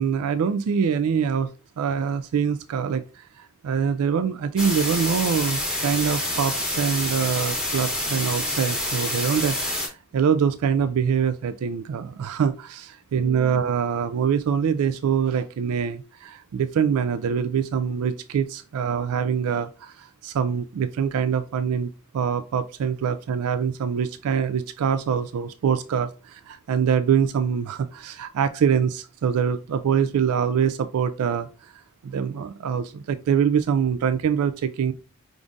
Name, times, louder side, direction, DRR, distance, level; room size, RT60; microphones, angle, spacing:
voice 1, 0.0-1.5 1.8-31.7 32.0-34.9, right 7 dB, 80° right, 11 dB, 0.3 m, -24 dB
sound 1, 4.6-9.9, left 1 dB, 5° right, 1.0 m, -27 dB
5.1 x 3.6 x 2.4 m, 0.33 s
head